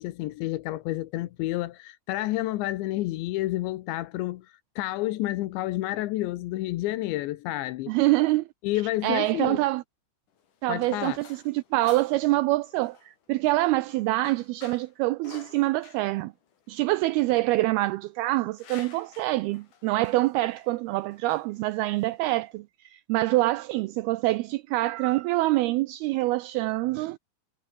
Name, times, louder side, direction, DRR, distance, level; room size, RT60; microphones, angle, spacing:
voice 1, 0.0-7.9 8.6-9.6 10.7-11.2, left 16 dB, 85° left, 3.3 m, -30 dB
voice 2, 7.9-8.5 9.0-9.8 10.6-16.3 16.7-27.2, right 19 dB, 85° right, 2.2 m, -25 dB
sound 1, 10.3-22.6, left 7 dB, 50° left, 4.0 m, -53 dB
omnidirectional pair, 5.1 m